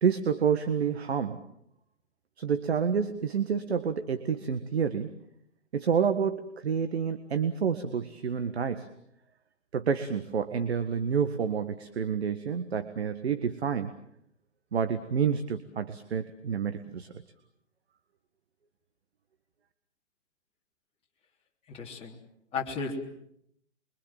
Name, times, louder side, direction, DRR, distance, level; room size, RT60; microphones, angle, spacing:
voice 1, 0.0-1.4 2.4-5.1 5.7-8.9 9.7-13.9 14.7-17.1, right 7 dB, 55° right, 10 dB, 1.7 m, -29 dB
voice 2, 21.7-22.2 22.5-23.0, left 4 dB, 15° left, -1 dB, 3.6 m, -34 dB
29.0 x 24.0 x 7.6 m, 0.76 s
figure-of-eight pair, 120°, 37 cm